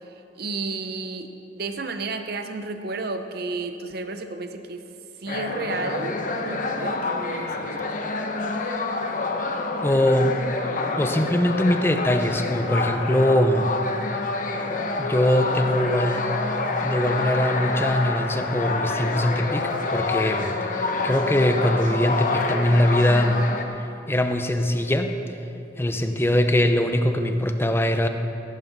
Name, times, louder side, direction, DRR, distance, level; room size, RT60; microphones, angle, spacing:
voice 1, 0.4-4.9 5.2-7.9 14.1-14.2 26.0-26.4, right 3 dB, 55° right, 8 dB, 0.8 m, -32 dB
sound 1, 5.3-23.6, left 3 dB, 45° left, 0.8 m, -27 dB
voice 2, 9.8-10.4 11.0-13.7 15.0-16.3 16.8-23.4 24.1-25.2 25.8-28.1, left 1 dB, 15° left, 7 dB, 0.6 m, -22 dB
14.5 x 11.5 x 4.1 m, 2.8 s
head